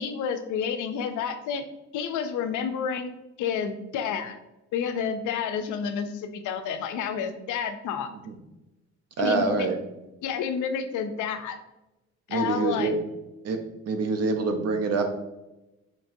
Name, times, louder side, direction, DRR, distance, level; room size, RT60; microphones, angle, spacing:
voice 1, 0.0-1.6 1.9-3.1 3.4-4.4 4.7-8.1 9.2-9.7 10.2-11.6 12.3-12.9, left 7 dB, 80° left, 8 dB, 0.5 m, -30 dB
voice 2, 9.2-9.8 12.3-13.0 13.4-13.6 13.9-15.0, right 3 dB, 55° right, 5 dB, 0.6 m, -25 dB
4.0 x 2.9 x 2.6 m, 0.97 s
cardioid pair, 90°, 30 cm